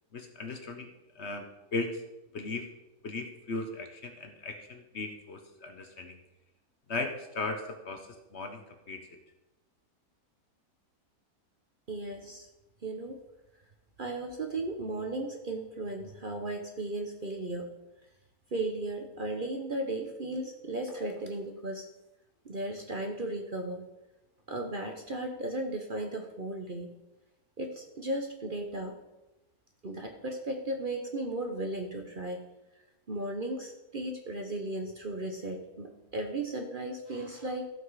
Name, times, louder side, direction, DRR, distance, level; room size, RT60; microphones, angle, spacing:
voice 1, 0.1-1.5 1.7-2.0 2.3-2.6 3.0-6.2 6.9-8.6 8.9-9.0, left 3 dB, 50° left, 5 dB, 1.1 m, -37 dB
voice 2, 11.9-12.5 12.8-13.2 14.0-17.7 18.5-21.9 22.4-23.9 24.5-26.9 27.6-28.9 29.8-32.4 33.1-37.7, right 2 dB, 40° right, 3 dB, 0.9 m, -35 dB
15.0 x 5.9 x 4.8 m, 0.99 s
omnidirectional pair, 1.6 m